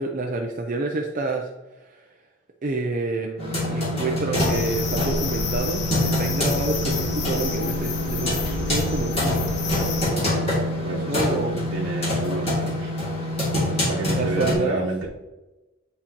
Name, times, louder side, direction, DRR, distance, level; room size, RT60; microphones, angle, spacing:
voice 1, 0.0-1.5 1.8-2.0 2.6-9.4 11.1-11.6 13.5-14.9, right 3 dB, 40° right, 2 dB, 0.5 m, -29 dB
sound 1, 3.4-14.5, left 1 dB, 30° left, 2.3 m, -25 dB
sound 2, 4.3-10.1, left 3 dB, 60° left, 0.9 m, -30 dB
voice 2, 10.8-11.4 11.7-12.9 13.8-15.1, right 2 dB, 80° right, -5 dB, 1.1 m, -29 dB
9.7 x 4.2 x 2.9 m, 1.1 s
head